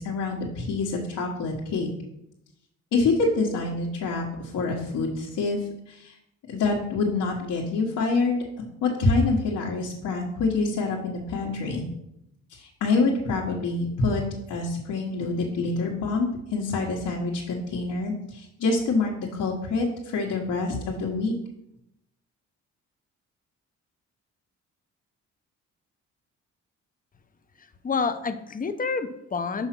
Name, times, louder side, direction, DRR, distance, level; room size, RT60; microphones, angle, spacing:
voice 1, 0.0-1.9 2.9-6.1 6.5-8.4 8.8-11.8 12.5-14.2 14.5-21.3, left 3 dB, 75° left, -4 dB, 1.4 m, -26 dB
voice 2, 27.6-29.7, left 4 dB, 30° left, 10 dB, 0.7 m, -29 dB
5.7 x 5.5 x 5.9 m, 0.83 s
cardioid pair, 90°, 30 cm